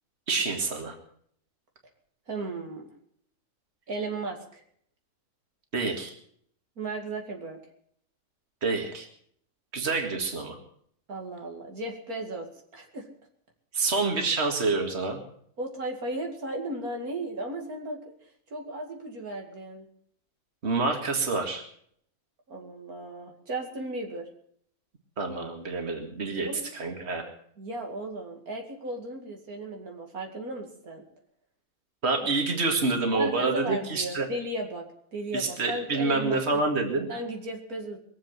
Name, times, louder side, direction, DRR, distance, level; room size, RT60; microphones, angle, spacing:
voice 1, 0.3-1.0 5.7-6.1 8.6-9.1 9.7-10.6 13.7-15.2 20.6-21.6 25.2-27.2 32.0-34.3 35.3-37.1, right 3 dB, 45° right, 3 dB, 2.3 m, -27 dB
voice 2, 2.3-2.9 3.9-4.6 6.8-7.6 11.1-12.5 12.7-13.1 15.6-18.0 18.5-19.9 22.5-24.3 26.5-26.6 27.6-31.1 33.1-34.9 35.1-36.6 37.1-38.0, right 2 dB, 90° right, 2 dB, 2.8 m, -35 dB
22.5 x 7.7 x 7.4 m, 0.65 s
omnidirectional pair, 1.5 m